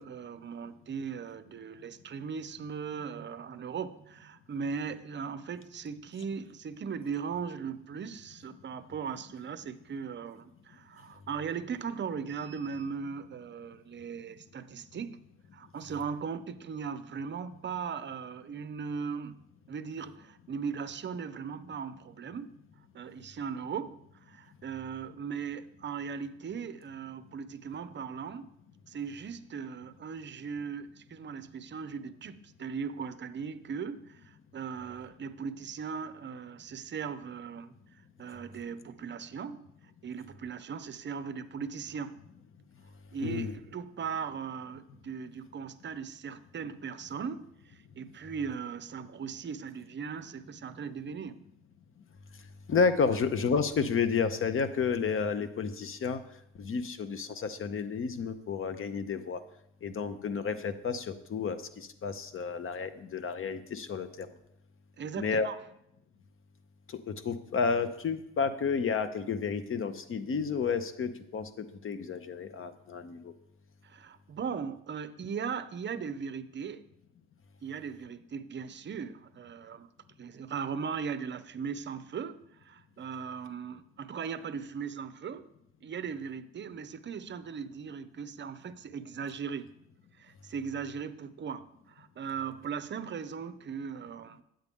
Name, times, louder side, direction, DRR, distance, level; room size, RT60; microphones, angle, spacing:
voice 1, 0.0-15.2 15.5-19.4 19.7-22.6 22.9-28.5 28.9-37.8 38.2-39.7 40.0-42.2 43.1-51.5 65.0-65.6 73.8-76.8 77.6-79.9 80.2-85.5 85.8-89.7 90.2-94.4, right 6 dB, 40° right, 0.6 m, -38 dB
voice 2, 43.2-43.5 52.7-56.2 56.6-59.4 59.8-64.3 65.2-65.5 67.1-73.3, left 5 dB, 45° left, 0.9 m, -31 dB
9.0 x 8.1 x 3.6 m
supercardioid pair, 65°, 30 cm